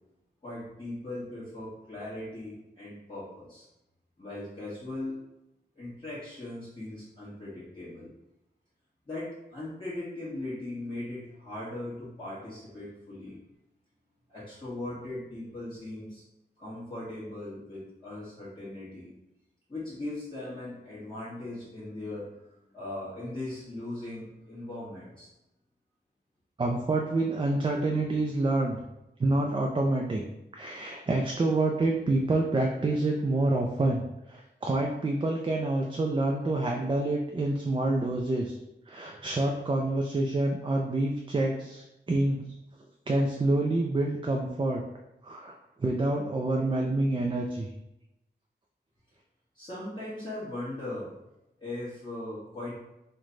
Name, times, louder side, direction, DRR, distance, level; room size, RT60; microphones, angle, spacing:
voice 1, 0.4-3.7 4.2-5.3 5.7-8.1 9.1-13.4 14.3-16.2 16.6-19.1 19.7-25.3 49.5-51.1 51.6-52.7, left 1 dB, 25° left, -12 dB, 1.2 m, -39 dB
voice 2, 26.6-28.8 29.2-30.2 30.5-38.5 38.9-42.4 43.1-44.8 45.2-47.7, right 2 dB, 30° right, 1 dB, 0.3 m, -27 dB
3.2 x 2.2 x 3.7 m, 0.91 s
wide cardioid pair, 90°, 18 cm